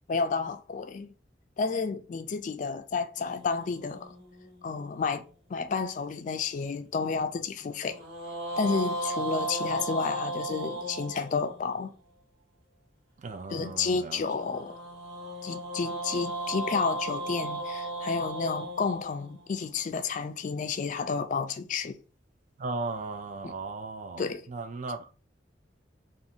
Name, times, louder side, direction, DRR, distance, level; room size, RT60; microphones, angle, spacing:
voice 1, 0.1-1.1 1.6-4.1 4.6-5.2 5.5-8.0 8.6-11.9 13.5-14.8 15.4-22.0 23.4-23.5 24.2-24.5, left 5 dB, 45° left, 0.3 m, -31 dB
sound 1, 3.2-5.6 7.8-12.0 14.1-20.3, right 2 dB, 80° right, 1.5 m, -36 dB
voice 2, 13.2-14.2 22.6-25.1, right 3 dB, 45° right, 0.3 m, -36 dB
2.5 x 2.4 x 2.7 m
head